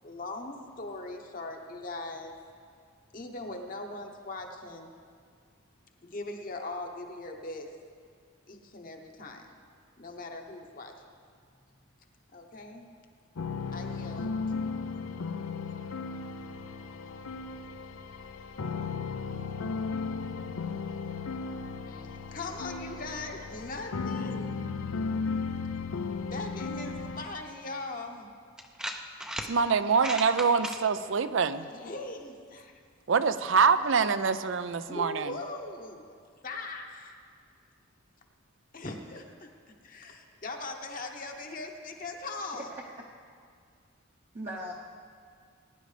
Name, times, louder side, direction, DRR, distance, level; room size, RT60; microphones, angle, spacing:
voice 1, 0.0-2.3 3.1-4.9 6.0-7.7 8.5-9.6 10.0-10.9 12.3-12.9 13.7-14.4 21.9-24.5 26.3-28.3 31.7-32.8 34.9-36.2 36.4-37.2 38.7-39.5 39.8-42.7, left 2 dB, 40° left, 2 dB, 1.0 m, -40 dB
sound 1, 13.4-27.3, left 4 dB, 85° left, 0.5 m, -35 dB
sound 2, 27.8-27.9 28.6-29.5 29.9-30.8, equal, 5° right, 0.5 m, -36 dB
voice 2, 29.5-31.7 33.1-35.3, right 5 dB, 65° right, 12 dB, 0.5 m, -25 dB
voice 3, 42.5-43.0 44.3-44.7, right 1 dB, 35° right, -4 dB, 0.8 m, -39 dB
20.5 x 10.5 x 3.3 m, 2.2 s
head